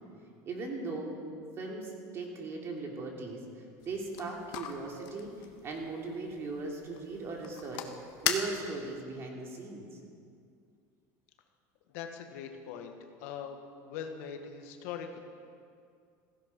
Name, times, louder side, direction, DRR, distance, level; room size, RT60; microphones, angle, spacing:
voice 1, 0.5-1.2 1.6-7.9 8.2-9.9, right 3 dB, 30° right, 0 dB, 3.0 m, -38 dB
sound 1, 3.8-9.0, left 9 dB, 60° left, 1.5 m, -39 dB
voice 2, 11.9-12.9 13.2-13.6 13.9-15.2, left 7 dB, 75° left, 4 dB, 1.7 m, -41 dB
16.5 x 15.5 x 5.5 m, 2.3 s
cardioid pair, 145°, 8 cm